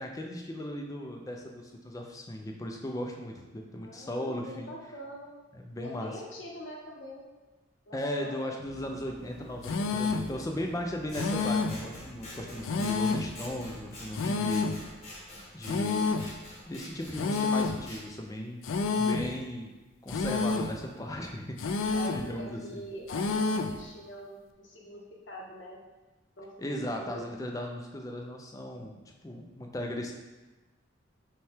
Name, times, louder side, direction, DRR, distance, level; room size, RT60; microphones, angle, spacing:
voice 1, 0.0-4.7 5.5-6.1 7.9-14.7 15.5-16.1 16.7-18.6 18.9-19.7 20.0-21.6 22.1-22.8 26.6-30.1, left 1 dB, 15° left, 2 dB, 0.3 m, -37 dB
voice 2, 3.8-5.3 5.8-7.3 7.9-8.4 12.2-12.9 21.9-25.0 25.3-25.8 26.4-27.3, equal, 65° left, -3 dB, 0.9 m, -44 dB
sound 1, 8.6-14.5, right 1 dB, 60° right, 1.2 m, -49 dB
sound 2, 9.6-10.3 11.1-11.9 12.6-13.4 14.1-14.8 15.6-16.3 17.1-17.8 18.6-19.3 20.1-20.8 21.6-22.3 23.1-23.8, left 4 dB, 90° left, 0.3 m, -29 dB
Scissors, 11.1-18.0, left 1 dB, 35° left, 0.9 m, -46 dB
5.4 x 2.2 x 3.4 m, 1.2 s
head